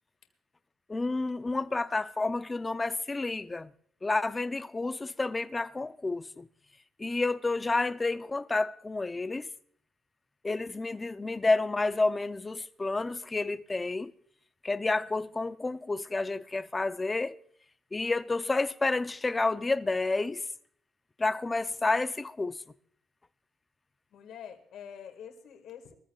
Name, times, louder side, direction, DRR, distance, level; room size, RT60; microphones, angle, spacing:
voice 1, 0.9-3.7 4.0-6.5 7.0-9.5 10.4-14.1 14.6-17.3 17.9-20.4 21.2-22.6, left 3 dB, 20° left, 0.6 m, -30 dB
voice 2, 24.1-25.9, left 8 dB, 75° left, 2.0 m, -46 dB
23.0 x 14.5 x 2.4 m
cardioid pair, 90°, 0 cm